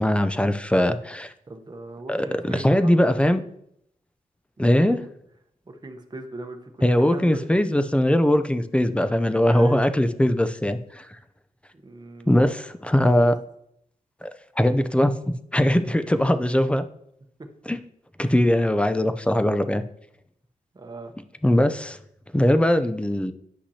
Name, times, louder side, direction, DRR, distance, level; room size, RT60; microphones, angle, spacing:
voice 1, 0.0-1.3 2.1-3.4 4.6-5.0 6.8-11.1 12.3-13.3 14.2-14.3 14.6-15.1 15.5-16.8 17.7-17.8 18.2-19.8 21.4-22.0 22.3-23.3, left 1 dB, 10° left, 9 dB, 0.5 m, -20 dB
voice 2, 1.5-3.0 4.6-5.0 5.7-7.4 9.5-9.8 11.8-12.3 13.0-13.3 17.4-17.5 20.7-21.1, right 2 dB, 30° right, 4 dB, 1.0 m, -39 dB
9.8 x 5.7 x 2.9 m, 0.73 s
cardioid pair, 70°, 14 cm